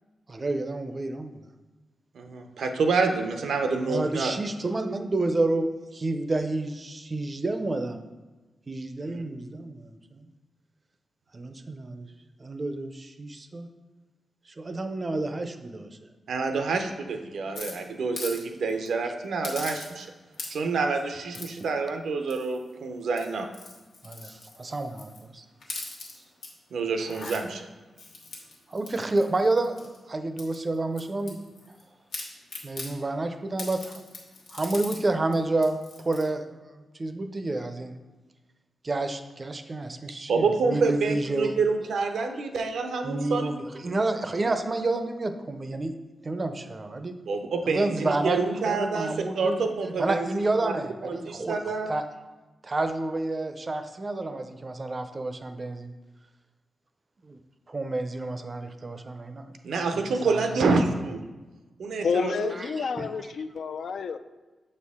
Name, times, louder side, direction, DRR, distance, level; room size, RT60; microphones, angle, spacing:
voice 1, 0.3-1.4 3.9-8.0 8.7-10.3 11.3-12.1 12.4-13.7 14.6-15.9 24.0-25.4 28.7-29.8 30.1-31.4 32.6-34.0 34.5-36.7 37.0-38.0 38.8-41.5 43.0-45.9 46.2-47.1 47.7-48.4 48.6-49.6 50.0-52.0 52.6-55.9 57.3-57.4 57.7-59.5 59.9-60.0 60.3-60.4 62.5-63.1, right 2 dB, 30° right, 8 dB, 0.4 m, -29 dB
voice 2, 2.1-4.3 9.0-9.2 16.3-20.1 20.5-23.5 26.7-27.6 40.3-43.5 47.3-50.7 51.0-51.9 59.6-61.2 61.8-62.5, right 4 dB, 85° right, 5 dB, 0.6 m, -27 dB
sound 1, 17.5-18.4 18.7-18.9 19.4-20.1 20.3-20.8 21.3-21.6 22.3-22.7 23.1-25.2 25.6-26.5 26.9-27.4 28.0-30.0 30.4-31.8 32.1-32.9 33.6-35.0 35.3-35.4 35.6-36.2, left 3 dB, 90° left, 1.3 m, -40 dB
voice 3, 62.0-64.2, left 6 dB, 70° left, 11 dB, 0.3 m, -29 dB
6.9 x 4.4 x 3.6 m, 1.2 s
wide cardioid pair, 115°, 0 cm